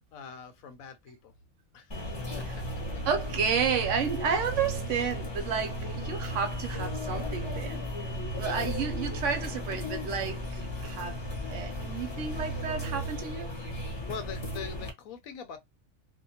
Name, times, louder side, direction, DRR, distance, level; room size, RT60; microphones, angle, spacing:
voice 1, 0.1-1.3 1.7-2.1 2.4-3.0 14.0-15.6, left 6 dB, 80° left, 1.1 m, -43 dB
sound 1, 1.9-14.9, equal, 25° left, 0.8 m, -35 dB
voice 2, 3.0-13.5, right 6 dB, 70° right, 0.9 m, -32 dB
2.7 x 2.2 x 2.7 m
omnidirectional pair, 1.4 m